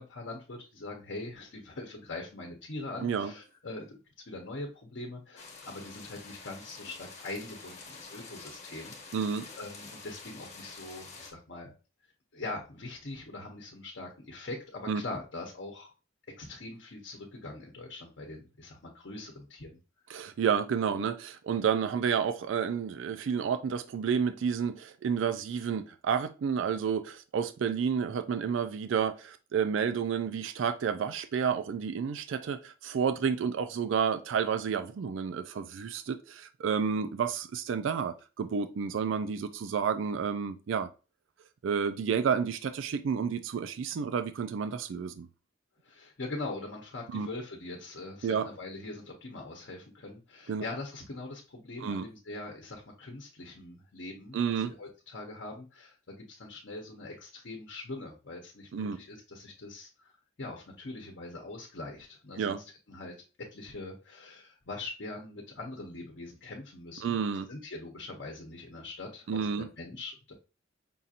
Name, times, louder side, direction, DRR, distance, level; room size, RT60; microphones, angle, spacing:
voice 1, 0.0-4.0 4.3-11.7 12.3-15.9 16.4-19.8 45.8-60.1 60.4-63.1 63.5-67.2 67.5-70.3, left 2 dB, 65° left, 0.8 m, -42 dB
voice 2, 3.0-3.3 9.1-9.5 14.9-15.0 20.1-40.9 41.6-45.3 47.1-47.3 48.2-48.5 50.5-50.6 51.8-52.0 54.3-54.7 58.7-59.0 62.4-62.6 67.0-67.5 69.3-69.7, right 6 dB, 75° right, 0.4 m, -30 dB
sound 1, 5.4-11.3, left 4 dB, 35° left, 1.0 m, -48 dB
5.4 x 2.5 x 2.7 m
head